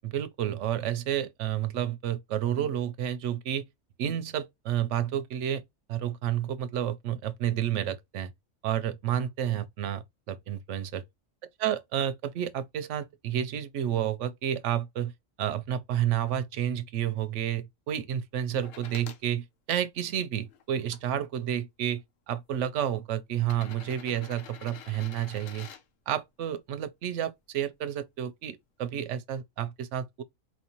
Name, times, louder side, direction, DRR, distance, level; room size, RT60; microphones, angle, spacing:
voice 1, 0.0-3.6 4.0-5.6 5.9-8.3 8.6-11.0 11.6-15.1 15.4-25.7 26.1-30.2, right 10 dB, 70° right, 0.9 m, -30 dB
sound 1, 18.6-19.2 20.0-21.0 22.0-22.1 23.4-25.8 27.7-27.8, left 8 dB, 75° left, 1.0 m, -47 dB
4.5 x 2.6 x 2.9 m
omnidirectional pair, 1.4 m